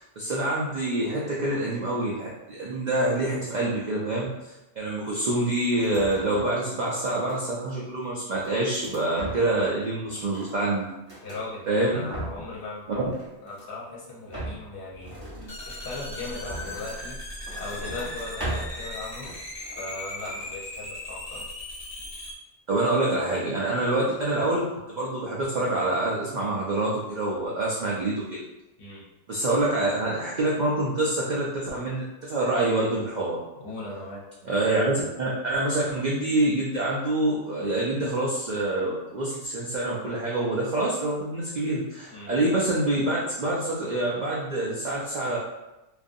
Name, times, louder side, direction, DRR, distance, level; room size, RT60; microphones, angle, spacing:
voice 1, 0.0-10.9 11.7-12.1 12.9-13.1 22.7-24.6 24.9-28.4 29.3-33.4 34.4-45.4, right 2 dB, 65° right, -5 dB, 0.4 m, -26 dB
sound 1, 5.7-6.7 7.0-7.7 8.2-9.7 10.0-11.5 11.9-12.6 12.9-13.8 14.3-17.1 17.4-18.9 19.2-19.9 20.2-20.5, right 1 dB, 25° right, 0.7 m, -39 dB
voice 2, 11.2-13.0 13.4-15.2 15.7-17.2 17.6-19.3 19.8-21.4 28.8-29.0 33.6-34.2 42.1-42.3, left 2 dB, 55° left, -5 dB, 0.8 m, -38 dB
sound 2, 15.5-22.3, left 1 dB, 40° left, 0.4 m, -38 dB
2.5 x 2.3 x 2.5 m, 0.95 s
omnidirectional pair, 1.2 m